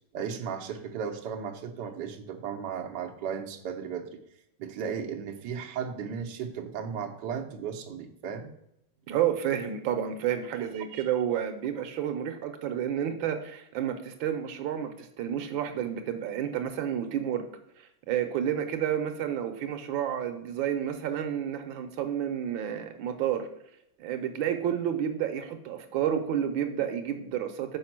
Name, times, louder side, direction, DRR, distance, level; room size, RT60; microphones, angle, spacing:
voice 1, 0.1-4.2 4.6-8.5 10.9-11.1, right 7 dB, 65° right, 3 dB, 1.4 m, -35 dB
voice 2, 9.1-17.4 17.8-23.5 24.0-27.8, right 9 dB, 85° right, 7 dB, 1.5 m, -30 dB
6.2 x 4.9 x 5.9 m, 0.78 s
omnidirectional pair, 2.1 m